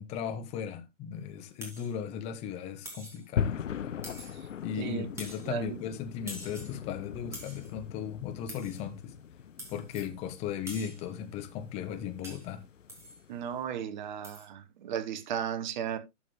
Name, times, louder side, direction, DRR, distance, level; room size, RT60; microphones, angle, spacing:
voice 1, 0.0-3.9 4.6-9.1 9.7-12.6, left 8 dB, 15° left, 0.9 m, -37 dB
sound 1, 1.6-1.9 2.8-3.3 4.0-4.5 5.2-5.5 6.3-6.8 7.3-7.7 8.5-8.8 9.6-10.1 10.7-11.1 12.2-12.5 12.9-13.2 14.2-14.5, right 1 dB, 5° right, 2.7 m, -45 dB
sound 2, 3.4-13.6, left 8 dB, 70° left, 0.8 m, -40 dB
voice 2, 4.8-5.1 5.5-5.8 13.3-16.0, right 8 dB, 35° right, 1.1 m, -35 dB
12.0 x 7.1 x 3.1 m
figure-of-eight pair, 130°, 39 cm